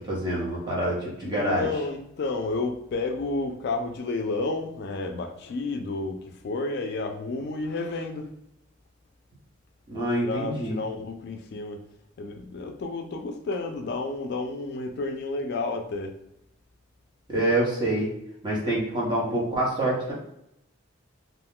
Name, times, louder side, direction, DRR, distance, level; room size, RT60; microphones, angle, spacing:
voice 1, 0.1-1.7 9.9-10.8 17.3-18.1 18.4-20.1, right 1 dB, 25° right, -5 dB, 0.9 m, -26 dB
voice 2, 1.2-6.2 6.4-8.3 10.2-11.8 12.2-16.2, left 3 dB, 55° left, 5 dB, 0.3 m, -31 dB
2.4 x 2.2 x 3.6 m, 0.78 s
head